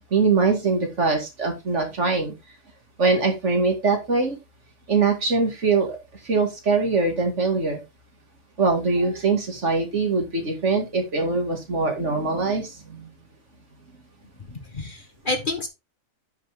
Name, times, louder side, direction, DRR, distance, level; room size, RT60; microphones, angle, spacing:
voice 1, 0.1-2.3 3.0-4.4 4.9-6.0 6.2-7.8 8.6-13.1, right 4 dB, 60° right, 3 dB, 2.6 m, -22 dB
voice 2, 14.5-15.7, left 2 dB, 40° left, 6 dB, 1.4 m, -29 dB
9.4 x 5.6 x 3.7 m, 0.24 s
omnidirectional pair, 1.4 m